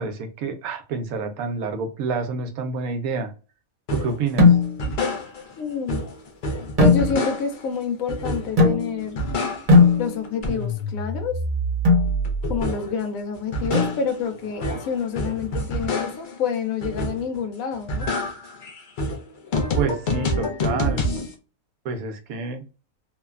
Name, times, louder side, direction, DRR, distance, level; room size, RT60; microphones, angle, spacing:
voice 1, 0.0-3.3 3.9-4.6 19.7-21.1 21.8-22.6, right 4 dB, 90° right, 1.1 m, -28 dB
sound 1, 3.9-4.2 4.6-5.6 5.9-7.7 8.1-8.7 9.0-10.0 10.2-13.0 13.3-16.4 16.8-17.4 17.7-21.3, equal, 55° left, 0.5 m, -27 dB
sound 2, 4.4-5.0 6.8-7.5 8.6-9.2 9.7-10.5 11.8-12.2 13.7-14.3, left 4 dB, 35° right, 0.6 m, -18 dB
voice 2, 5.6-6.0 6.8-9.2 10.0-11.4 12.5-18.1, left 6 dB, 80° left, 1.0 m, -28 dB
3.1 x 2.1 x 2.3 m
omnidirectional pair, 1.4 m